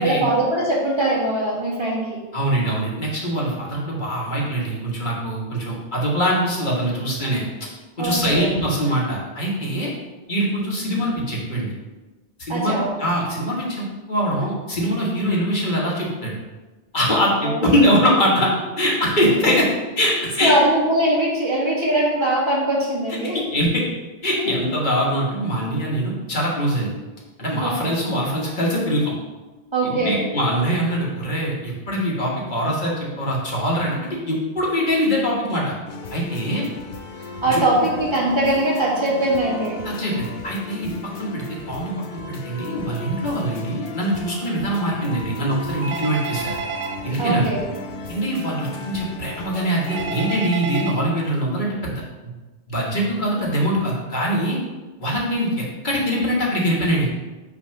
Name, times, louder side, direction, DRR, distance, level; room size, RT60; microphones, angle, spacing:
voice 1, 0.0-2.2 8.0-8.5 12.5-12.9 17.4-17.7 20.4-23.4 24.4-24.5 27.6-28.0 29.7-30.2 37.4-39.8 47.2-47.6, right 1 dB, 25° right, -5 dB, 1.7 m, -21 dB
voice 2, 2.3-7.7 8.0-9.9 10.3-11.7 12.4-16.4 16.9-19.7 20.0-20.5 23.3-23.8 24.2-26.9 27.4-29.1 29.8-35.7 36.1-36.6 37.5-37.6 39.8-40.9 41.2-46.5 47.0-47.5 48.1-52.0 52.7-54.6 55.0-55.5 55.8-57.1, equal, 45° left, -4 dB, 1.6 m, -23 dB
sound 1, 35.9-50.4, left 2 dB, 60° left, 0.8 m, -35 dB
Telephone, 45.8-47.0 49.9-50.9, right 5 dB, 85° right, 1.1 m, -29 dB
6.1 x 3.3 x 5.7 m, 1.2 s
omnidirectional pair, 1.2 m